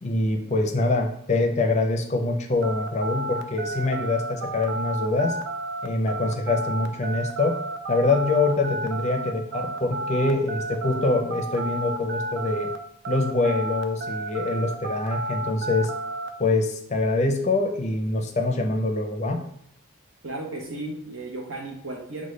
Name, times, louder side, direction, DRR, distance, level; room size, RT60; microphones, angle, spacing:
voice 1, 0.0-5.4 5.8-7.6 7.9-12.7 13.1-15.9 16.4-19.4, left 2 dB, 35° left, 4 dB, 0.5 m, -24 dB
sound 1, 2.6-12.8 13.0-16.3, right 2 dB, 55° right, 0.3 m, -31 dB
voice 2, 20.2-22.3, right 2 dB, 70° right, 1 dB, 0.9 m, -34 dB
6.2 x 2.2 x 3.2 m, 0.70 s
head